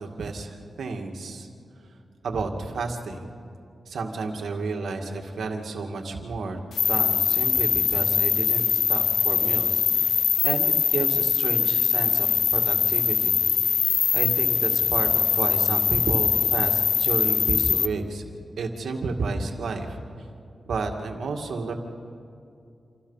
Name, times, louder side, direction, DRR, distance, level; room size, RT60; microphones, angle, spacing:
voice 1, 0.0-1.5 2.2-3.3 3.9-6.6 6.9-13.4 13.7-18.2 18.6-20.0 20.7-21.7, right 3 dB, 85° right, 3 dB, 2.1 m, -31 dB
sound 1, 6.7-17.9, left 7 dB, 85° left, 0.6 m, -22 dB
27.0 x 25.5 x 5.7 m, 2.5 s
cardioid pair, 75°, 0 cm